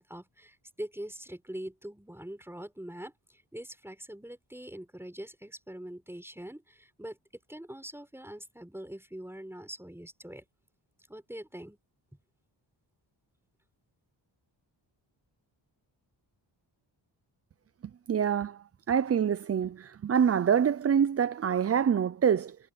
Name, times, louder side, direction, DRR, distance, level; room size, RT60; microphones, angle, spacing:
voice 1, 0.0-7.2 7.5-10.4 11.1-11.8, right 1 dB, 5° right, 6.5 m, -43 dB
voice 2, 18.1-18.6 18.9-22.6, right 8 dB, 35° right, 0.5 m, -25 dB
wide cardioid pair, 125°, 45 cm